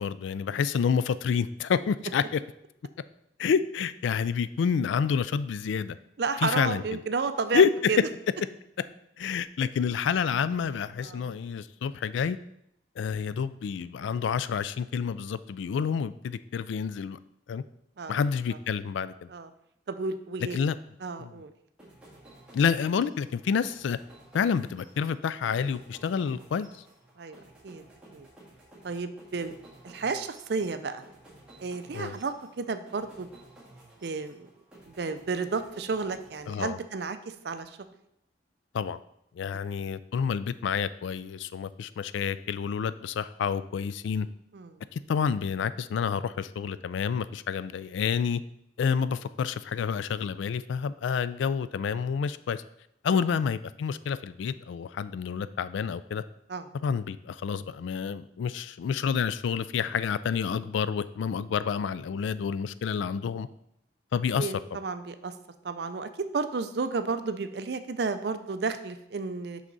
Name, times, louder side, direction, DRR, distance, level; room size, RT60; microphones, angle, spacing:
voice 1, 0.0-2.4 3.4-6.0 6.4-7.0 7.5-7.9 9.2-12.4 13.0-17.2 17.5-17.6 18.1-19.3 20.5-20.8 21.2-21.3 22.5-24.0 24.3-26.7 31.9-32.1 36.5-36.8 38.7-39.0 39.4-44.3 44.9-48.4 48.8-52.6 53.0-56.2 56.8-63.5 64.1-64.5, left 6 dB, 75° left, 15 dB, 0.3 m, -28 dB
voice 2, 6.2-8.0 11.0-11.3 18.0-18.2 19.3-19.5 19.9-20.6 21.0-21.5 27.2-27.8 28.1-28.3 28.8-29.5 29.8-31.0 31.6-33.3 34.0-34.5 34.9-37.8 39.8-39.9 44.5-44.8 53.1-53.2 56.5-56.7 64.4-65.3 65.6-69.6, right 4 dB, 60° right, 10 dB, 0.4 m, -32 dB
sound 1, 21.8-37.1, right 1 dB, 5° right, 1.8 m, -54 dB
6.1 x 5.6 x 3.9 m, 0.78 s
head